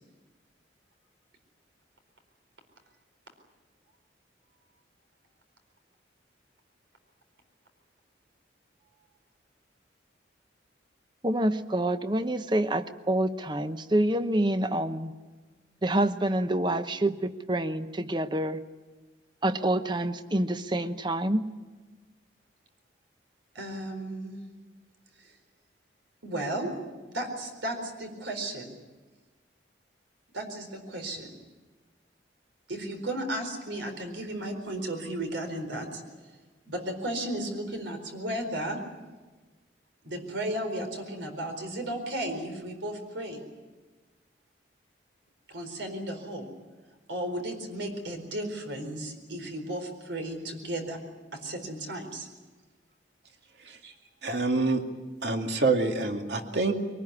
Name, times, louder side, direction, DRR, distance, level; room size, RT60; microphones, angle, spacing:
voice 1, 11.2-15.1 15.8-18.6 19.4-21.5, right 1 dB, 25° right, 10 dB, 0.9 m, -27 dB
voice 2, 23.5-24.4 25.2-25.3 26.2-26.7 27.1-28.7 30.3-31.3 32.7-36.0 36.7-38.8 40.0-43.4 45.5-46.5 47.1-51.0 51.4-52.3 53.8-53.9, right 1 dB, 85° right, 5 dB, 4.4 m, -34 dB
voice 3, 54.2-54.8 55.2-56.7, right 3 dB, 70° right, 4 dB, 2.3 m, -26 dB
23.0 x 19.5 x 9.8 m, 1.3 s
head